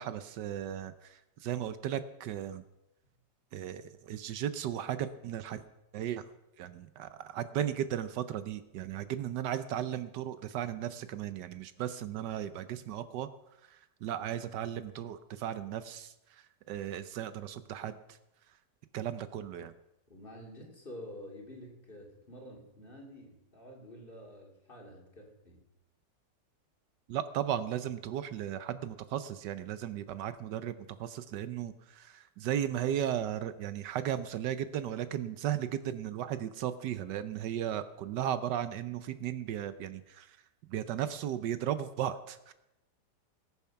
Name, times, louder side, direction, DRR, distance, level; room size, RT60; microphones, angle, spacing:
voice 1, 0.0-2.6 3.5-5.6 5.9-6.2 6.6-13.3 13.7-18.2 18.9-19.7 27.1-30.7 31.0-40.4 40.7-42.5, right 10 dB, 75° right, 12 dB, 1.3 m, -36 dB
voice 2, 20.1-25.6, equal, 30° left, 0 dB, 2.6 m, -49 dB
19.5 x 7.2 x 5.7 m, 0.92 s
omnidirectional pair, 1.9 m